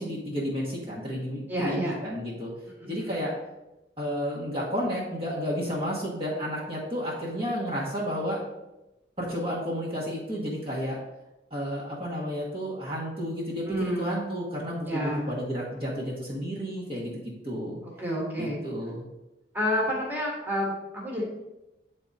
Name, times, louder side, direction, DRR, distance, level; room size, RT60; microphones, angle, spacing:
voice 1, 0.0-2.5 2.8-3.3 4.0-8.4 9.2-11.0 11.5-17.8 18.4-19.0, equal, 30° right, -6 dB, 1.3 m, -32 dB
voice 2, 1.5-2.0 2.8-3.0 13.7-14.1 14.9-15.2 18.0-18.6 19.5-21.2, equal, 10° right, -4 dB, 1.5 m, -29 dB
8.8 x 3.7 x 4.1 m, 0.98 s
head